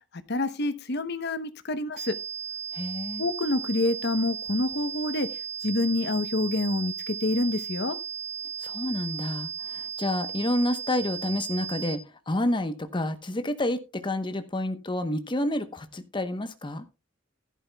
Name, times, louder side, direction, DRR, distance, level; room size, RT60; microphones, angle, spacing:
voice 1, 0.3-2.2 3.2-5.3 5.6-8.0, left 2 dB, 60° left, 0.9 m, -27 dB
sound 1, 2.0-12.0, right 7 dB, 35° right, 3.6 m, -36 dB
voice 2, 2.7-3.2 8.6-16.9, left 1 dB, 25° left, 1.0 m, -29 dB
15.5 x 11.0 x 2.3 m
head